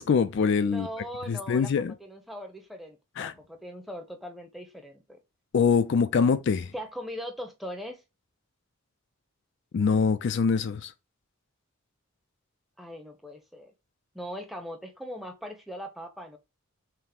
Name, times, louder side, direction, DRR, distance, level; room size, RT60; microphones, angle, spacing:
voice 1, 0.0-0.9 1.3-1.9 3.2-3.3 5.5-6.7 9.7-10.9, left 5 dB, 55° left, 0.4 m, -24 dB
voice 2, 0.6-5.2 6.7-8.0 12.8-13.7 14.1-16.4, equal, ahead, 0.7 m, -40 dB
5.7 x 2.1 x 3.3 m
head